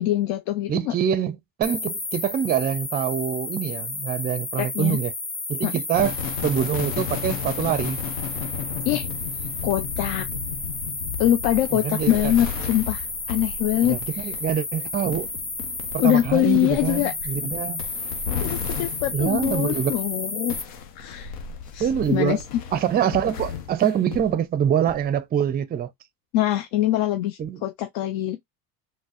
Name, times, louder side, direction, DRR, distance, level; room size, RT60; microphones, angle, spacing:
voice 1, 0.0-0.9 4.6-5.0 5.6-5.7 8.8-9.1 9.6-10.3 11.2-14.3 16.0-17.1 18.4-20.6 21.0-21.3 21.7-22.4 26.3-28.4, left 13 dB, 65° left, 0.6 m, -23 dB
voice 2, 0.7-5.1 5.5-6.1 6.4-8.0 11.7-12.3 13.8-15.3 15.9-17.8 19.1-20.0 21.8-22.4 22.7-25.9 27.4-27.6, right 9 dB, 20° right, 0.4 m, -25 dB
sound 1, 1.6-20.6, left 3 dB, 20° left, 0.8 m, -32 dB
sound 2, 5.9-20.1 20.5-24.4 24.9-25.1, left 7 dB, 90° left, 0.9 m, -34 dB
3.9 x 2.1 x 2.4 m
supercardioid pair, 90°, 47 cm